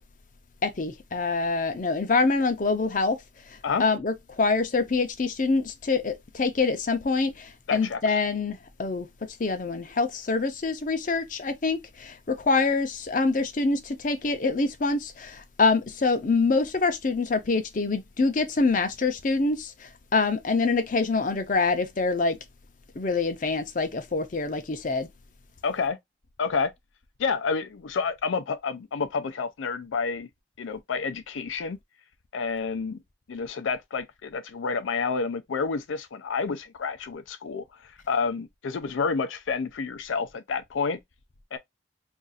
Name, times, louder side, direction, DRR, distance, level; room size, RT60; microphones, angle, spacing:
voice 1, 0.6-3.2 3.8-22.4 23.0-25.1, left 3 dB, 45° left, 0.6 m, -25 dB
voice 2, 7.7-8.2 25.6-26.0 26.4-26.7 27.2-30.3 30.6-31.8 32.3-33.0 33.3-41.0 41.5-41.6, left 5 dB, 90° left, 0.4 m, -29 dB
2.6 x 2.4 x 3.9 m
head